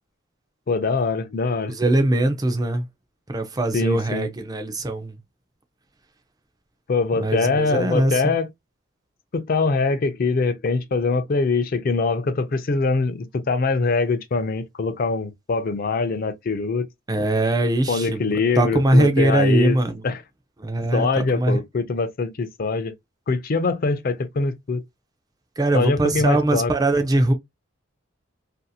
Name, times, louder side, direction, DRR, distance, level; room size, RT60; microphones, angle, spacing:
voice 1, 0.7-1.8 3.7-4.3 6.9-8.5 9.3-16.8 17.9-19.8 20.0-20.2 20.9-22.9 23.3-24.8 25.7-26.7, left 4 dB, 45° left, 0.4 m, -23 dB
voice 2, 1.7-2.9 3.3-5.2 7.2-8.2 17.1-20.0 20.6-21.6 25.6-27.3, right 1 dB, 20° right, 0.4 m, -21 dB
2.7 x 2.6 x 2.2 m
head